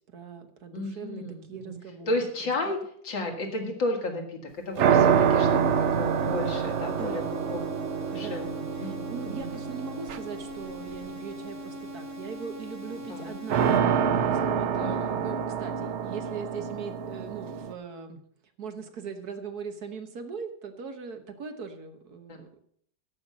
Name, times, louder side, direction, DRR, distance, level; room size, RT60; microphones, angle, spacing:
voice 1, 0.1-2.2 2.6-2.7 6.8-7.3 8.1-8.5 8.7-18.2 18.6-22.6, right 6 dB, 60° right, 6 dB, 1.6 m, -40 dB
voice 2, 0.7-1.7 2.1-2.8 3.0-4.4 4.7-7.6 8.1-9.5 13.1-13.3 14.8-15.3 22.3-22.4, left 2 dB, 85° left, 2 dB, 2.9 m, -33 dB
sound 1, 4.8-13.8, equal, 15° right, 0.6 m, -41 dB
sound 2, 4.8-11.1 13.5-17.7, right 7 dB, 75° right, 0.6 m, -26 dB
13.0 x 5.7 x 7.3 m, 0.63 s
omnidirectional pair, 2.0 m